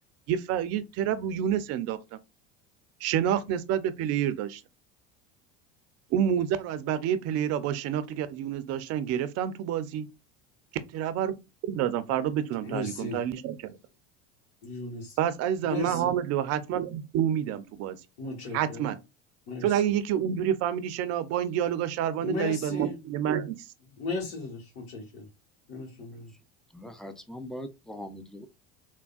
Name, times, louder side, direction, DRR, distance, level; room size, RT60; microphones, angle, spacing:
voice 1, 0.3-2.2 3.0-4.6 6.1-10.1 10.9-11.4 11.6-13.5 15.2-18.0 18.5-19.0 19.6-23.7, right 10 dB, 50° right, 0.5 m, -28 dB
voice 2, 12.6-13.2 14.6-15.2 15.6-16.1 18.2-18.9 19.5-19.8 22.2-22.9 24.0-25.3 25.7-26.3, left 3 dB, 70° left, 1.2 m, -35 dB
voice 3, 26.7-28.5, equal, ahead, 0.4 m, -41 dB
3.4 x 2.1 x 2.3 m
hypercardioid pair, 85°, 33 cm